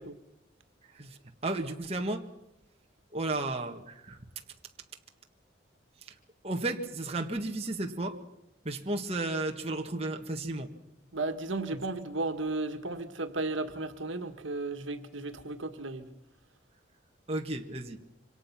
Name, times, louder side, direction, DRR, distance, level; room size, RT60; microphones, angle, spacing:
voice 1, 1.4-2.3 3.1-4.2 6.4-8.2 8.7-10.7 17.3-18.0, right 2 dB, 30° right, 3 dB, 1.9 m, -33 dB
voice 2, 11.1-16.0, right 2 dB, 80° right, 7 dB, 1.8 m, -34 dB
27.0 x 25.0 x 6.1 m, 0.82 s
head